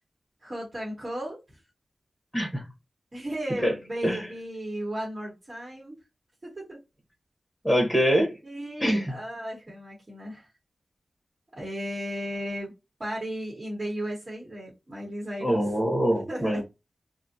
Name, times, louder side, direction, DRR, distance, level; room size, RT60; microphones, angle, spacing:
voice 1, 0.4-1.6 3.1-6.0 6.4-6.8 8.4-10.5 11.5-12.7 13.0-15.6 16.3-16.6, equal, 40° right, 1.2 m, -35 dB
voice 2, 7.6-8.4 8.8-9.1 15.4-16.6, equal, ahead, 0.9 m, -24 dB
2.6 x 2.4 x 2.6 m
wide cardioid pair, 100°, 0 cm